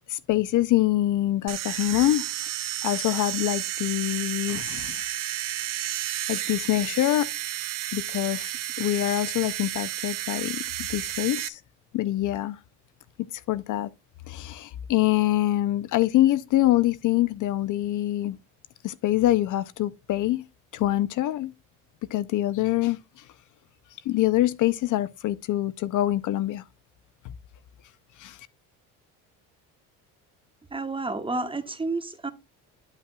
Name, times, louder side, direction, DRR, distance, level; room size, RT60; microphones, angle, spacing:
voice 1, 0.1-2.2 2.8-5.1 6.3-7.3 7.9-10.6 10.9-11.6 11.9-12.6 13.5-13.9 14.3-18.4 18.8-20.4 20.7-21.5 22.1-23.0 24.1-26.6 27.2-27.3 28.2-28.4, left 14 dB, 50° left, 0.6 m, -25 dB
sound 1, 1.5-11.5, right 14 dB, 55° right, 0.8 m, -32 dB
voice 2, 30.7-32.3, right 3 dB, 15° right, 0.9 m, -30 dB
11.0 x 5.7 x 2.2 m
supercardioid pair, 100°, 38 cm